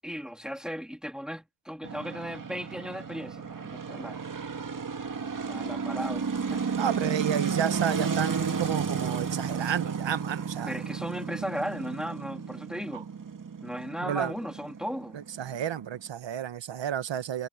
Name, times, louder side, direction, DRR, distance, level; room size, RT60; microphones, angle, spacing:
voice 1, 0.0-4.2 5.4-6.7 10.7-13.1 13.6-15.2, equal, ahead, 3.7 m, -36 dB
sound 1, 1.8-16.1, right 6 dB, 45° right, 2.2 m, -33 dB
voice 2, 6.7-10.7 14.0-14.3 15.1-17.5, right 9 dB, 70° right, 1.5 m, -31 dB
cardioid pair, 65°, 46 cm